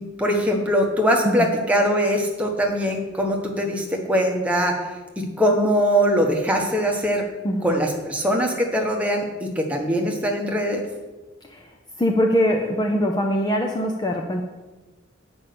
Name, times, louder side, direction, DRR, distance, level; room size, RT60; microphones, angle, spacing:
voice 1, 0.0-4.8 5.2-7.2 7.6-10.8, equal, 5° right, 1 dB, 1.2 m, -22 dB
voice 2, 11.4-14.4, equal, 20° left, 2 dB, 0.6 m, -23 dB
8.5 x 5.3 x 6.8 m, 1.2 s
head